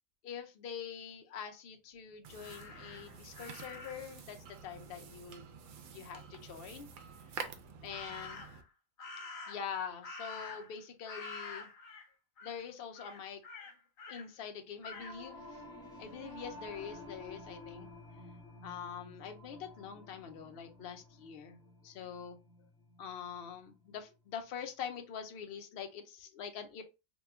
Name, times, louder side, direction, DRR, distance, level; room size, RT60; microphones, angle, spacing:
voice 1, 0.2-5.4 5.9-6.9 7.8-8.4 9.5-11.7 12.4-13.4 14.1-15.6 16.0-17.9 18.6-21.6 21.8-22.4 23.0-26.8, left 7 dB, 55° left, 0.7 m, -44 dB
sound 1, 2.2-8.6, right 6 dB, 90° right, 1.0 m, -49 dB
Crow, 2.4-4.1 7.9-8.6 9.0-10.8 11.1-12.1 12.4-12.6 12.9-14.3 14.8-15.2, left 3 dB, 90° left, 1.3 m, -47 dB
Singing / Musical instrument, 14.8-24.4, left 1 dB, 5° left, 0.9 m, -52 dB
2.9 x 2.2 x 3.4 m
omnidirectional pair, 1.4 m